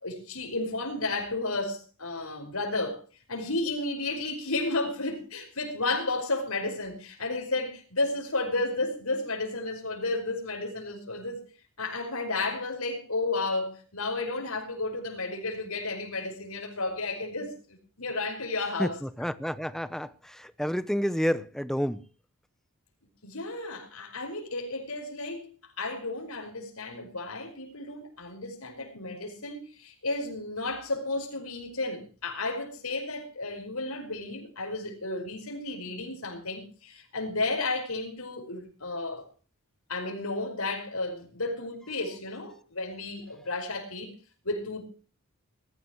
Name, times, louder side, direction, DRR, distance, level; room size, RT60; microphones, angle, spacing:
voice 1, 0.0-3.0 3.3-11.4 11.8-19.0 23.2-25.5 25.8-39.3 39.9-44.1 44.4-44.8, left 2 dB, 75° left, 5.2 m, -32 dB
voice 2, 19.2-22.0, equal, ahead, 0.7 m, -29 dB
20.0 x 15.0 x 3.1 m
head